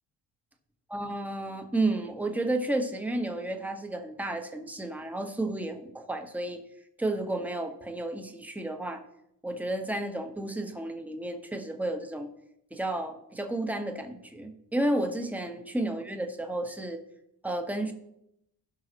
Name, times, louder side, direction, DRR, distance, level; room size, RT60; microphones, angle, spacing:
voice 1, 0.9-6.6 7.0-9.0 9.4-12.3 12.7-17.0 17.4-17.9, right 1 dB, 5° right, 5 dB, 1.1 m, -32 dB
16.5 x 5.6 x 2.9 m, 0.78 s
cardioid pair, 100°, 44 cm